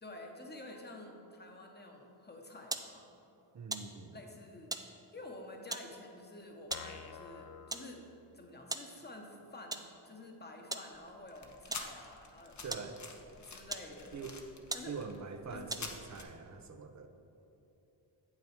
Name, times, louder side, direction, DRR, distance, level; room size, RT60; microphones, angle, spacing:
voice 1, 0.0-3.1 4.1-4.7 5.1-8.1 8.3-13.0 13.4-14.2 14.7-15.0 15.5-15.7, left 2 dB, 20° left, 1 dB, 1.2 m, -50 dB
sound 1, 2.7-2.9 3.7-3.9 4.7-4.9 5.7-5.9 6.7-6.9 7.7-7.9 8.7-8.9 9.7-9.9 10.7-10.9 11.7-11.9 12.7-12.9 13.7-13.9 14.4-14.5 14.7-14.9 15.7-16.0, right 2 dB, 10° right, 0.4 m, -39 dB
voice 2, 3.5-4.2 12.6-13.0 14.1-14.4 14.9-17.1, right 5 dB, 35° right, 7 dB, 0.7 m, -44 dB
sound 2, 6.7-8.6, left 7 dB, 55° left, 0.5 m, -50 dB
sound 3, 10.9-16.2, left 4 dB, 35° left, 0.9 m, -49 dB
7.6 x 5.9 x 4.4 m, 2.9 s
cardioid pair, 55°, 47 cm